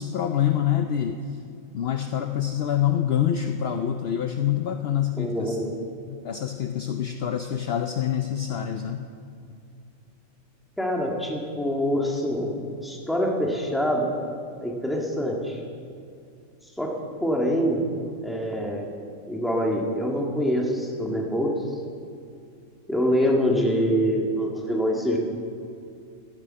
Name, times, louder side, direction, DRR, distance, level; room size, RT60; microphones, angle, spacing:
voice 1, 0.0-1.4 1.7-5.6 6.1-9.1, left 10 dB, 60° left, 7 dB, 0.8 m, -26 dB
voice 2, 5.2-5.7 10.8-14.2 14.6-15.6 16.6-17.8 18.2-18.9 19.3-21.8 22.9-25.2, equal, ahead, -1 dB, 1.7 m, -25 dB
12.5 x 10.0 x 7.6 m, 2.4 s
omnidirectional pair, 1.3 m